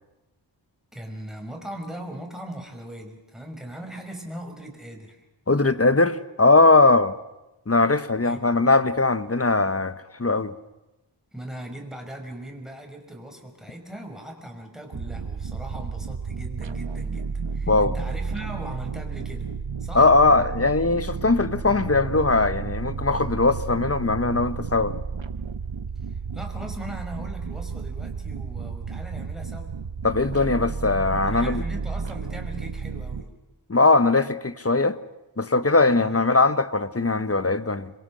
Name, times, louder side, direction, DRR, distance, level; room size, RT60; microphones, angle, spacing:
voice 1, 0.9-5.2 8.2-8.6 11.3-19.5 19.8-20.1 26.0-29.7 31.3-33.3 35.9-36.3, right 1 dB, ahead, 5.3 m, -39 dB
voice 2, 5.5-7.1 7.7-9.9 10.2-10.5 17.7-17.9 19.9-25.0 30.0-31.6 33.7-35.0 35.4-37.9, left 3 dB, 30° left, 1.2 m, -20 dB
sound 1, 14.9-33.2, right 5 dB, 85° right, 1.2 m, -32 dB
27.0 x 22.5 x 6.4 m
wide cardioid pair, 50°, 45 cm